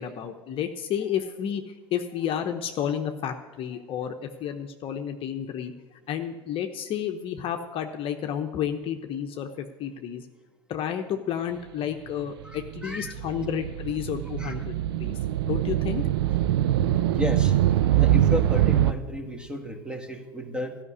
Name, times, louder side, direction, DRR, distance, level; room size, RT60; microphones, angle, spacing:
voice 1, 0.0-5.7 6.1-10.3 10.7-14.7 15.0-16.0, left 9 dB, 40° left, 6 dB, 1.0 m, -31 dB
voice 2, 12.4-13.1 14.4-14.5 17.2-17.5 17.9-20.8, left 1 dB, 5° right, 5 dB, 1.8 m, -33 dB
sound 1, 12.4-18.9, right 12 dB, 70° right, 0.5 m, -23 dB
13.5 x 5.9 x 9.7 m, 1.2 s
hypercardioid pair, 85°, 14 cm